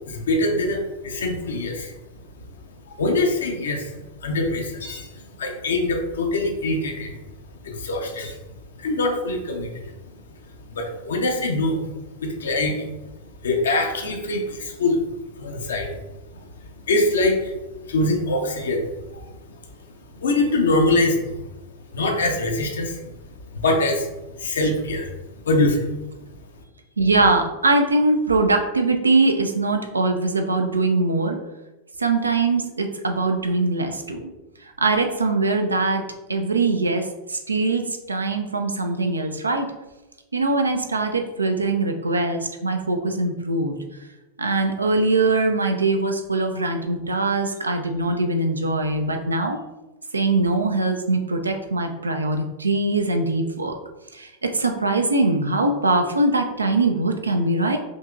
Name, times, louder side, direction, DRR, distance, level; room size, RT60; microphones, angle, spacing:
voice 1, 0.1-1.9 2.9-7.2 7.6-8.4 8.8-9.9 10.6-11.9 12.2-12.9 13.4-15.0 15.4-16.0 16.3-16.5 16.8-21.4 21.9-23.0 23.5-24.1 24.4-25.9, left 2 dB, 65° left, 3 dB, 0.7 m, -24 dB
voice 2, 27.0-31.4 32.0-34.3 34.6-36.0 36.3-39.7 40.3-43.8 44.4-49.6 50.1-53.7 54.1-57.8, right 2 dB, 80° right, 4 dB, 0.5 m, -22 dB
5.2 x 2.9 x 2.5 m, 1.1 s
figure-of-eight pair, 90°, 0 cm